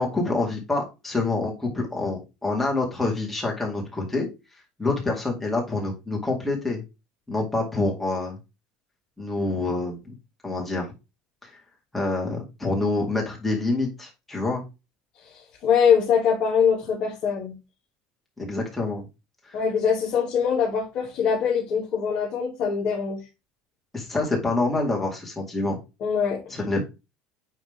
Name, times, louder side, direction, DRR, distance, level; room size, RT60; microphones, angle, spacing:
voice 1, 0.0-4.3 4.8-6.8 7.3-8.4 9.2-10.1 10.4-10.9 11.9-14.6 18.4-19.1 23.9-25.8 26.5-26.9, left 2 dB, 5° left, -1 dB, 2.0 m, -26 dB
voice 2, 15.6-17.5 19.5-23.2 26.0-26.6, left 7 dB, 45° left, -4 dB, 2.3 m, -23 dB
9.2 x 3.2 x 3.5 m, 0.26 s
cardioid pair, 155°, 2 cm